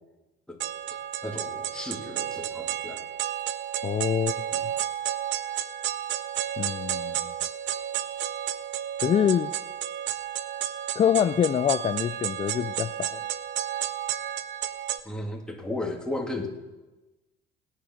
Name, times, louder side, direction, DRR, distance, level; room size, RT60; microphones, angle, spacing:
sound 1, 0.6-15.0, right 11 dB, 65° right, 0.8 m, -32 dB
voice 1, 1.2-3.0 4.5-4.6 15.0-16.5, left 2 dB, 5° left, 1 dB, 2.6 m, -34 dB
voice 2, 3.8-4.3 6.6-7.3 9.0-9.5 10.9-13.2, left 9 dB, 30° left, 14 dB, 0.4 m, -25 dB
17.0 x 10.0 x 6.3 m, 1.1 s
cardioid pair, 105°, 20 cm